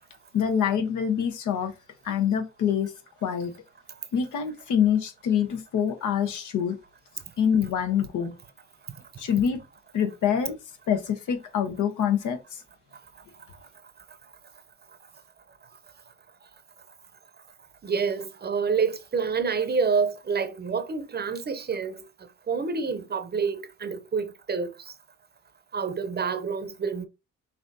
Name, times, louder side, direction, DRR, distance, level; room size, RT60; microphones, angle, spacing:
voice 1, 0.3-1.7 2.0-2.9 3.2-3.5 4.1-6.8 7.4-8.3 9.2-9.6 9.9-10.6 10.9-12.6, left 8 dB, 80° left, 1.0 m, -25 dB
voice 2, 17.8-22.1 22.5-24.9 25.7-27.1, right 5 dB, 35° right, 0.7 m, -28 dB
5.7 x 2.8 x 2.7 m
cardioid pair, 90°, 30 cm